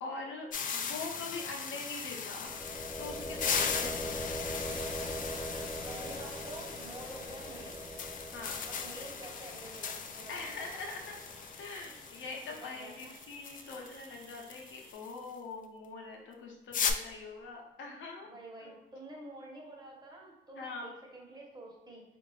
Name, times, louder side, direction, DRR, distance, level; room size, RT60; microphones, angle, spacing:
voice 1, 0.0-2.5 3.0-4.4 8.3-8.6 10.3-11.2 11.6-18.3 18.6-18.8 20.6-20.9, left 3 dB, 75° left, 1 dB, 0.9 m, -43 dB
sound 1, 0.5-15.2 16.7-16.9, left 6 dB, 45° left, 0.4 m, -38 dB
sound 2, 2.3-12.2, equal, ahead, 0.6 m, -42 dB
sound 3, 3.2-14.9, right 3 dB, 75° right, 0.8 m, -54 dB
voice 2, 5.9-7.8 8.6-10.6 12.5-13.2 18.2-22.0, right 1 dB, 20° right, -2 dB, 1.1 m, -48 dB
3.5 x 2.6 x 3.2 m, 1.1 s
cardioid pair, 90°, 20 cm